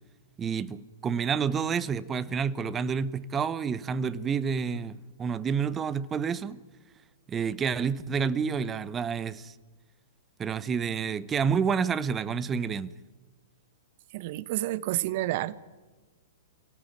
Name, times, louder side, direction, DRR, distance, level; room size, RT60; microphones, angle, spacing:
voice 1, 0.4-6.6 7.3-9.5 10.4-12.9, right 6 dB, 20° right, 1.0 m, -29 dB
voice 2, 14.1-15.6, right 16 dB, 50° right, 1.1 m, -30 dB
27.0 x 18.0 x 9.5 m
figure-of-eight pair, 110°, 0 cm